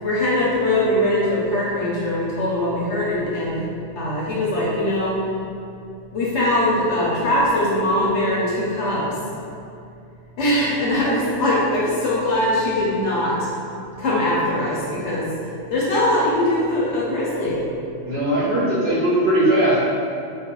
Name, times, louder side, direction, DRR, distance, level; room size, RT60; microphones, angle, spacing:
voice 1, 0.0-3.7 4.0-5.2 6.1-9.1 10.4-13.3 14.0-15.3 15.7-17.6, left 1 dB, 65° left, -6 dB, 0.8 m, -21 dB
voice 2, 18.1-19.8, right 1 dB, 60° right, -10 dB, 0.7 m, -19 dB
2.3 x 2.2 x 2.9 m, 2.6 s
omnidirectional pair, 1.3 m